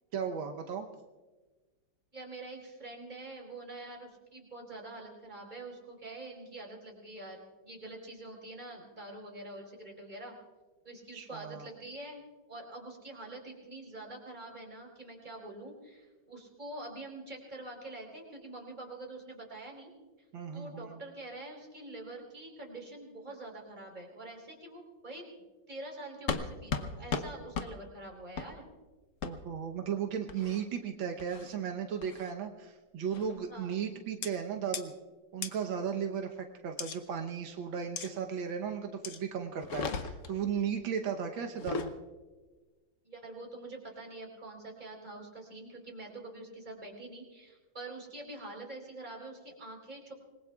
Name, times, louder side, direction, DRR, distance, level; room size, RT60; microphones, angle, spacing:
voice 1, 0.1-0.9 11.1-11.7 20.3-21.0 29.2-34.9 35.3-41.9, right 7 dB, 85° right, 4 dB, 1.7 m, -35 dB
voice 2, 2.1-10.4 10.8-12.2 12.5-19.9 20.5-25.2 25.7-28.7 33.5-33.7 35.9-36.0 43.0-50.1, right 2 dB, 20° right, 0 dB, 3.9 m, -45 dB
sound 1, 26.3-26.4 26.7-26.9 27.1-27.3 27.5-27.7 28.4-28.5 29.2-29.3 30.3-30.6 31.2-31.5 32.0-32.3 33.1-33.4 34.2-34.3 34.7-34.8 35.4-35.5 36.8-37.0 38.0-38.1 39.0-39.2 39.6-40.3 41.5-41.9, left 5 dB, 55° left, 1.0 m, -35 dB
26.5 x 21.0 x 2.3 m, 1.3 s
omnidirectional pair, 2.1 m